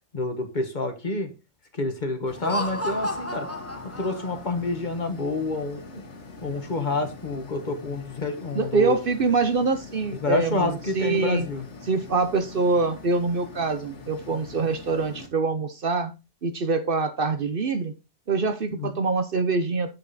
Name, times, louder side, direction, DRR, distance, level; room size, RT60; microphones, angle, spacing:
voice 1, 0.1-1.3 1.7-3.5 4.0-6.0 6.4-9.0 10.2-11.6 18.7-18.9, left 2 dB, 40° left, 6 dB, 1.5 m, -28 dB
sound 1, 2.3-15.3, left 3 dB, 80° left, 1.5 m, -44 dB
Laughter, 2.3-4.6, left 1 dB, 15° left, 0.9 m, -32 dB
voice 2, 8.5-11.5 11.9-16.1 16.4-17.9 18.3-19.9, right 4 dB, 55° right, 10 dB, 1.0 m, -25 dB
8.1 x 6.1 x 4.1 m, 0.28 s
omnidirectional pair, 1.2 m